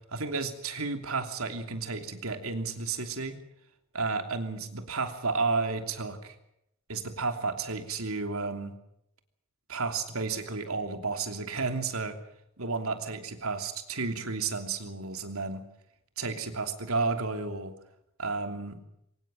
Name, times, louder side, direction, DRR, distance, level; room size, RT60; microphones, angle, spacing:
voice 1, 0.1-3.4 3.9-6.3 6.9-8.7 9.7-12.2 12.6-15.6 16.2-17.7 18.2-18.8, right 4 dB, 90° right, 7 dB, 3.0 m, -32 dB
23.5 x 19.5 x 7.7 m, 0.79 s
head